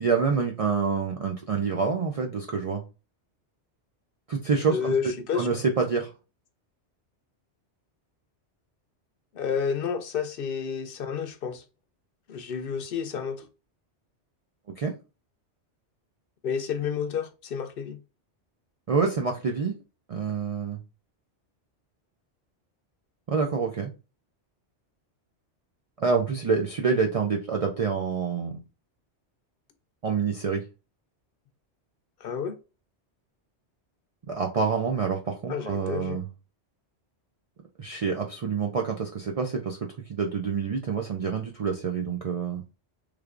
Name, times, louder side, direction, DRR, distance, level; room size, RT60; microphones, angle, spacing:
voice 1, 0.0-2.8 4.3-4.9 5.3-6.1 14.8-14.9 18.9-19.7 20.1-20.8 23.3-23.9 26.0-28.6 30.0-30.6 34.3-36.2 37.8-39.8 40.1-42.6, right 5 dB, 65° right, 0.3 m, -27 dB
voice 2, 4.7-5.6 9.3-11.6 12.3-13.5 16.4-18.0 32.2-32.6 35.5-36.2, left 6 dB, 60° left, 0.7 m, -30 dB
3.3 x 3.2 x 2.4 m
omnidirectional pair, 1.2 m